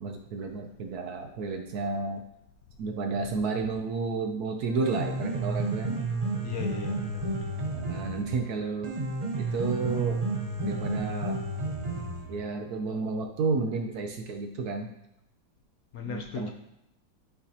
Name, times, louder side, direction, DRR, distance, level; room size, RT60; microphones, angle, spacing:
voice 1, 0.0-2.2 2.8-6.0 7.7-8.9 9.4-10.2 10.6-11.4 12.3-14.9 16.0-16.5, right 4 dB, 65° right, 4 dB, 1.1 m, -31 dB
Piano, 4.6-12.6, right 2 dB, 35° right, 0.6 m, -31 dB
voice 2, 6.4-7.6 15.9-16.5, left 5 dB, 70° left, 2 dB, 0.9 m, -38 dB
11.0 x 4.9 x 2.8 m, 0.82 s
omnidirectional pair, 2.0 m